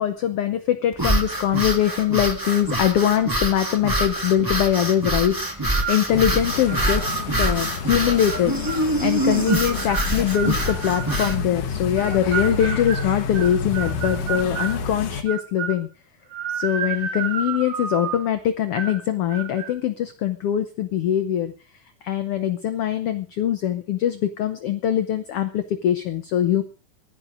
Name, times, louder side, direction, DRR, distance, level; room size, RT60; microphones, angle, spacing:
voice 1, 0.0-8.5 9.0-15.9 16.5-21.5 22.0-26.6, left 10 dB, 80° left, 9 dB, 1.3 m, -22 dB
Fast breathing struggle male, 0.9-11.4, right 1 dB, 15° right, 0.7 m, -25 dB
sound 1, 5.7-6.1 6.7-7.3 7.9-8.9 9.5-11.4 12.0-14.8 15.3-15.8 16.3-18.3 18.7-19.0 19.3-19.7, right 7 dB, 65° right, 2.5 m, -31 dB
sound 2, 6.1-15.2, left 5 dB, 60° left, 2.1 m, -30 dB
23.0 x 16.0 x 2.6 m, 0.35 s
omnidirectional pair, 3.7 m